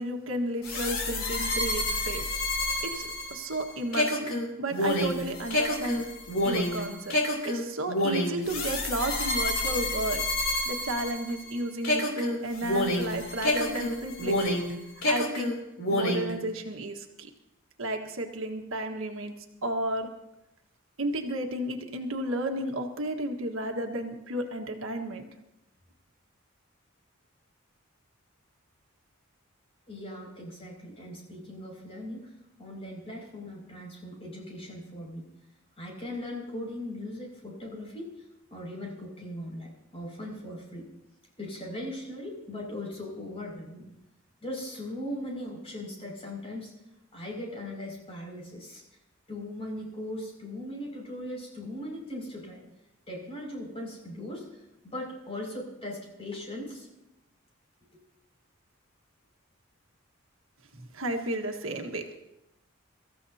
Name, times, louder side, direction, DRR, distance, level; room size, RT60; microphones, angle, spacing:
voice 1, 0.0-2.3 2.9-4.3 4.6-6.0 6.4-7.2 7.4-10.2 10.6-14.6 15.0-15.5 15.9-17.3 17.8-19.3 19.6-20.1 21.0-25.2 60.9-62.2, right 1 dB, 80° right, 3 dB, 1.6 m, -32 dB
sound 1, 0.6-11.5 11.8-14.7 15.0-16.3, left 1 dB, 80° left, 3.4 m, -28 dB
voice 2, 29.9-35.3 35.8-38.1 38.5-40.9 41.4-43.9 44.4-46.7 47.1-48.8 49.3-52.6 53.1-56.9, left 1 dB, 30° left, -1 dB, 6.0 m, -39 dB
24.5 x 14.5 x 2.8 m, 0.90 s
head